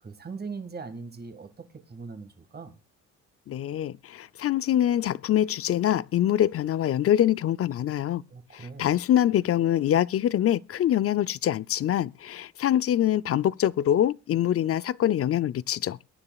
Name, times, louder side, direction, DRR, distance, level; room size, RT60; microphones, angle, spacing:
voice 1, 0.0-2.7 8.3-8.9, right 4 dB, 30° right, 1.9 m, -40 dB
voice 2, 3.5-8.2 8.5-16.0, left 11 dB, 50° left, 0.5 m, -24 dB
22.5 x 9.8 x 2.4 m
cardioid pair, 90°, 30 cm